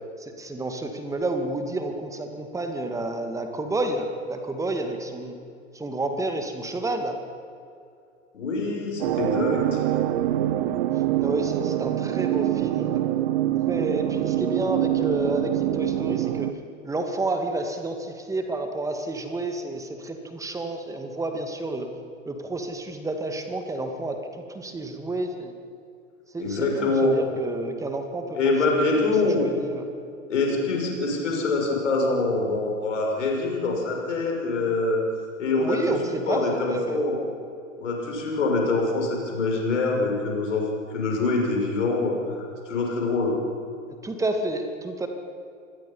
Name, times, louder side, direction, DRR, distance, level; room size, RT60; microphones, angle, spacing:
voice 1, 0.2-5.4 5.7-7.2 11.2-13.0 13.7-16.5 16.8-21.9 22.3-24.2 24.5-25.5 26.3-28.5 28.8-29.9 35.6-37.0 44.0-45.1, right 2 dB, 10° right, 5 dB, 2.2 m, -30 dB
voice 2, 8.3-9.8 26.4-27.2 28.3-29.5 30.3-35.0 35.4-36.0 36.3-37.2 37.8-43.3, left 3 dB, 65° left, 0 dB, 6.7 m, -25 dB
sound 1, 9.0-16.5, right 13 dB, 45° right, 1.1 m, -25 dB
27.0 x 21.5 x 5.7 m, 2.4 s
figure-of-eight pair, 100°, 40 cm